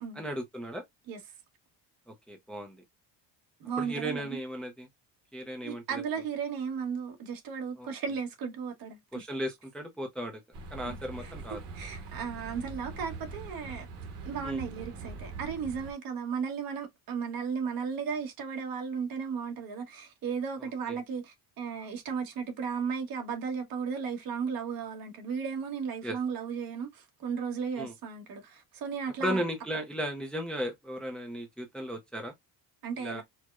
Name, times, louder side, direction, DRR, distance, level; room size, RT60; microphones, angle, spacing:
voice 1, 0.2-0.8 2.1-2.8 3.8-4.9 5.3-6.0 7.8-7.9 9.1-10.4 10.7-11.6 14.4-14.6 20.6-21.0 26.0-26.2 27.8-27.9 29.2-32.3 33.0-33.2, equal, ahead, 0.4 m, -36 dB
voice 2, 3.6-4.4 5.6-9.3 10.8-13.9 14.2-29.4 32.8-33.2, right 6 dB, 55° right, 1.1 m, -35 dB
sound 1, 10.5-15.9, right 4 dB, 70° right, 1.2 m, -43 dB
4.5 x 2.1 x 2.3 m
cardioid pair, 170°, 42 cm